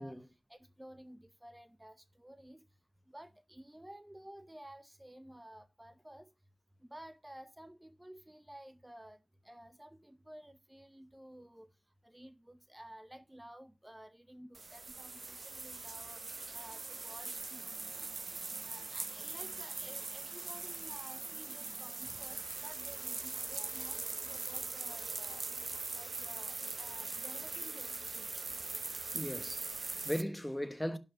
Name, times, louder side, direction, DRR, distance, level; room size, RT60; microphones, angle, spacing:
voice 1, 0.0-2.7 3.1-6.3 6.8-9.2 9.4-11.7 12.0-18.1 18.6-25.5 25.9-28.4, right 1 dB, 10° right, 0.7 m, -53 dB
sound 1, 14.5-30.2, right 3 dB, 50° right, 0.7 m, -41 dB
voice 2, 29.1-31.0, equal, 5° left, 1.1 m, -38 dB
11.0 x 5.7 x 5.9 m
wide cardioid pair, 95°, 0 cm